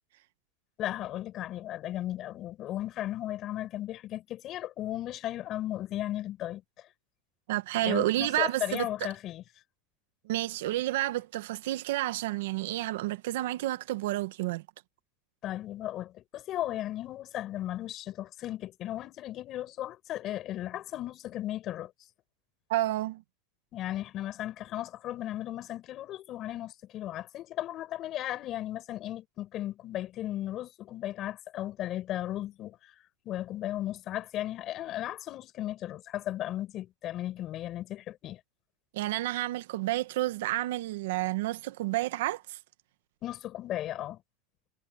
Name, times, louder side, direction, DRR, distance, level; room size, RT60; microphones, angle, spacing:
voice 1, 0.8-6.9 7.8-9.4 15.4-21.9 23.7-32.9 33.2-38.4 43.2-44.2, left 13 dB, 40° left, 6.1 m, -36 dB
voice 2, 7.5-8.9 10.2-14.6 22.7-23.2 38.9-42.6, right 16 dB, 80° right, 1.2 m, -30 dB
supercardioid pair, 140°, 0 cm